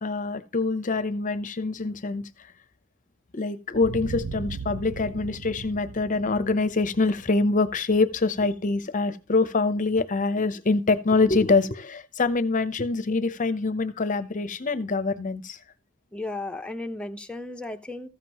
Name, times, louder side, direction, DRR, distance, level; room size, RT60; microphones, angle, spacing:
voice 1, 0.0-2.3 3.3-15.6, left 3 dB, 40° left, 0.7 m, -25 dB
sound 1, 3.7-8.3, right 4 dB, 75° right, 0.7 m, -38 dB
voice 2, 16.1-18.1, left 2 dB, 5° left, 0.8 m, -34 dB
14.5 x 7.4 x 3.0 m
head